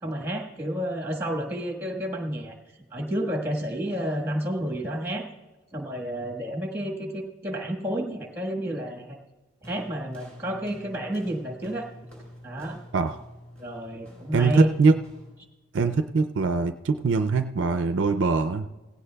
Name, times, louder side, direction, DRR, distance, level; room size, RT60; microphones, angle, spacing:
voice 1, 0.0-2.5 2.9-5.3 5.7-9.2 9.6-11.9 12.4-12.8 13.6-14.7, equal, 10° right, 2 dB, 1.4 m, -30 dB
sound 1, 9.6-15.4, equal, 5° left, 4.0 m, -47 dB
voice 2, 14.3-15.0 15.7-18.7, right 4 dB, 60° right, 9 dB, 0.4 m, -22 dB
17.0 x 16.5 x 2.3 m, 1.2 s
head